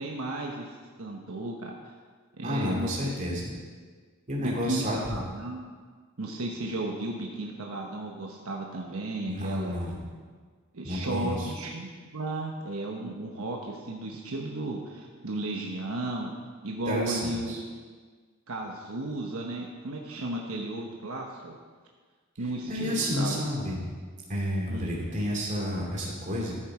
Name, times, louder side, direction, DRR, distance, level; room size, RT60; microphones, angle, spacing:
voice 1, 0.0-2.0 2.4-3.1 4.4-5.6 6.2-9.9 10.7-16.3 16.6-17.6 18.5-21.6 22.4-23.4 24.7-25.0, right 2 dB, 75° right, 0 dB, 1.1 m, -34 dB
voice 2, 2.4-3.5 4.3-5.2 9.3-10.0 10.8-11.5 16.9-17.6 22.7-23.9 24.3-26.5, equal, 35° right, -3 dB, 2.6 m, -30 dB
13.5 x 7.5 x 4.8 m, 1.5 s
head